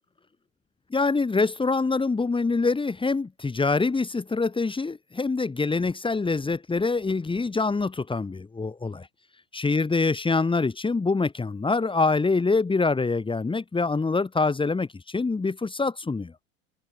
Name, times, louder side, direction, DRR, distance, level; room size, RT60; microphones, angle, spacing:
voice 1, 0.9-9.1 9.5-16.3, left 3 dB, 15° left, 3.4 m, -25 dB
hypercardioid pair, 95°, 39 cm